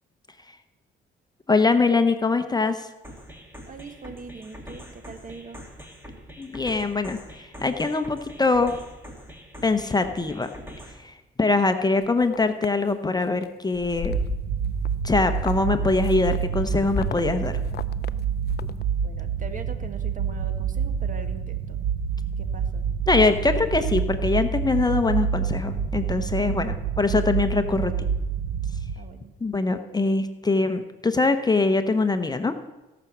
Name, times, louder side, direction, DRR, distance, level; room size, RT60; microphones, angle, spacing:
voice 1, 1.5-2.9 6.4-8.7 9.6-10.5 11.0-14.2 15.0-17.6 23.1-28.1 29.4-32.5, left 3 dB, 20° left, 8 dB, 0.8 m, -23 dB
sound 1, 3.0-11.0, equal, 10° right, 2.6 m, -43 dB
voice 2, 3.7-5.6 19.0-21.8 22.4-22.8 28.9-29.3, right 4 dB, 40° right, 8 dB, 1.5 m, -41 dB
sound 2, 12.0-12.7 13.2-13.5 13.7-14.9 15.1-18.8, left 10 dB, 55° left, 0.5 m, -35 dB
sound 3, 14.1-28.9, right 7 dB, 60° right, 1.0 m, -27 dB
17.0 x 6.0 x 7.2 m, 1.1 s
cardioid pair, 90°, 20 cm